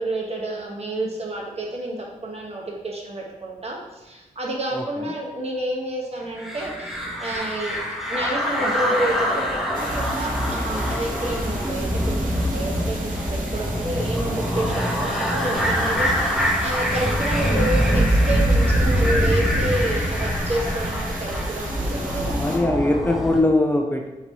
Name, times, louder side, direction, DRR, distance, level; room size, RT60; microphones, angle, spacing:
voice 1, 0.0-7.8 8.1-9.4 10.0-22.4, right 1 dB, 50° right, -2 dB, 1.1 m, -29 dB
sound 1, 6.4-23.4, equal, 5° right, 0.8 m, -23 dB
sound 2, 9.7-22.6, right 2 dB, 75° right, 0.8 m, -38 dB
voice 2, 22.4-24.2, left 2 dB, 15° left, 2 dB, 0.4 m, -21 dB
3.9 x 2.9 x 4.6 m, 1.1 s
cardioid pair, 80°, 14 cm